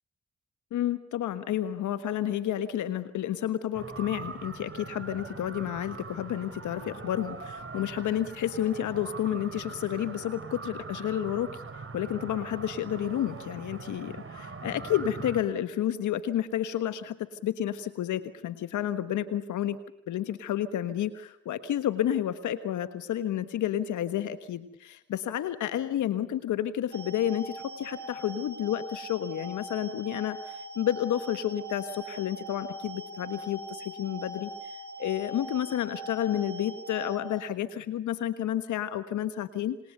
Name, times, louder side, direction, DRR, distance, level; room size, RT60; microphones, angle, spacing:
voice 1, 0.7-11.6 11.9-19.8 20.1-34.7 35.0-39.8, left 11 dB, 80° left, 12 dB, 1.4 m, -30 dB
sound 1, 3.7-15.4, right 4 dB, 45° right, 6.2 m, -42 dB
sound 2, 26.9-37.2, right 1 dB, 75° right, 4.3 m, -41 dB
28.0 x 27.0 x 6.8 m, 0.79 s
supercardioid pair, 45°, 30 cm